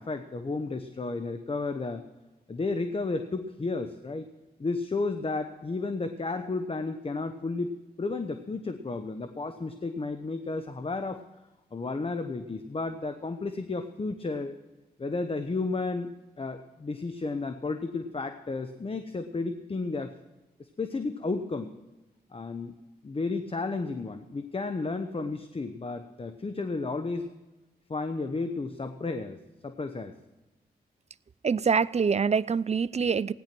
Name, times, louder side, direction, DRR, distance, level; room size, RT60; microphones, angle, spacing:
voice 1, 0.0-2.1 2.5-4.3 4.6-11.2 11.7-14.5 15.0-20.2 20.6-21.8 22.3-22.7 23.0-27.3 27.9-29.4 29.6-30.2, left 3 dB, 35° left, 9 dB, 0.9 m, -32 dB
voice 2, 31.4-33.3, right 6 dB, 40° right, 18 dB, 0.5 m, -25 dB
16.5 x 10.5 x 6.1 m, 1.1 s
cardioid pair, 60°, 17 cm